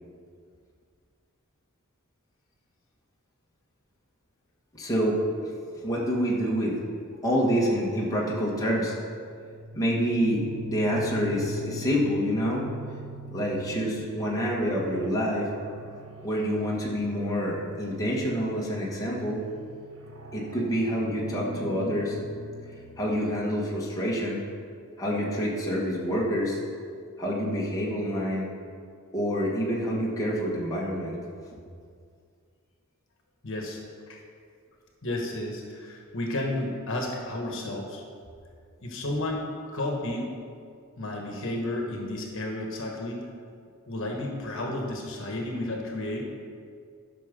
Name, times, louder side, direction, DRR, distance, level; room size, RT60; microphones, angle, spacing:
voice 1, 4.8-5.5 5.8-6.8 7.2-8.9 9.7-12.7 13.3-15.5 16.2-19.4 20.3-22.2 23.0-24.4 25.0-26.6 27.2-28.5 29.1-31.1, equal, 15° left, -5 dB, 1.7 m, -27 dB
sound 1, 9.3-23.9, right 1 dB, 80° right, 1.4 m, -42 dB
voice 2, 33.4-33.8 34.1-34.2 35.0-38.0 38.8-40.3 41.0-43.2 43.9-46.2, left 1 dB, 65° left, 0 dB, 1.4 m, -32 dB
12.0 x 6.0 x 5.3 m, 2.2 s
head